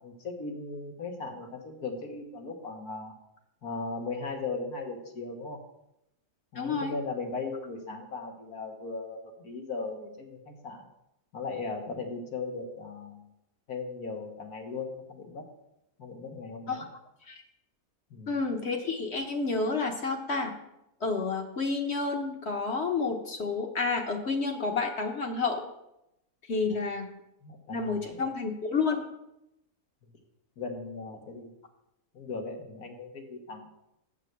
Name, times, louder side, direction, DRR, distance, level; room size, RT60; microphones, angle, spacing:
voice 1, 0.0-3.1 3.6-5.6 6.5-10.9 11.3-13.3 13.7-15.4 16.0-16.8 18.1-18.3 26.7-26.9 27.4-28.2 30.0-30.1 30.6-31.5 32.1-33.6, left 3 dB, 85° left, 2 dB, 1.9 m, -38 dB
voice 2, 6.5-6.9 16.7-16.8 17.3-17.4 18.3-20.5 21.0-25.6 26.5-27.1 27.7-29.0, left 4 dB, 50° left, 3 dB, 1.2 m, -30 dB
7.9 x 6.0 x 6.0 m, 0.84 s
omnidirectional pair, 1.6 m